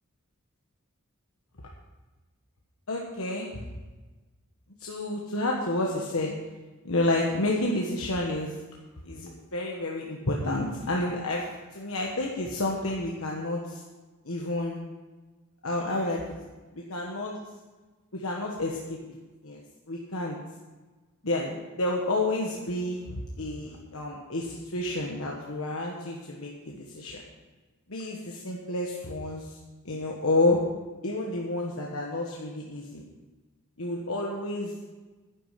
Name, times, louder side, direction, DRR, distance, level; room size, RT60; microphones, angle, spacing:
voice 1, 2.9-3.7 4.8-6.3 6.8-8.5 9.0-13.8 14.2-14.8 15.6-16.2 16.7-17.4 18.1-19.0 19.4-19.6 19.9-20.4 21.2-27.2 27.9-29.6 29.8-30.7 31.0-33.0 33.8-34.7, left 2 dB, 70° left, -1 dB, 1.4 m, -30 dB
10.5 x 10.5 x 5.8 m, 1.2 s
head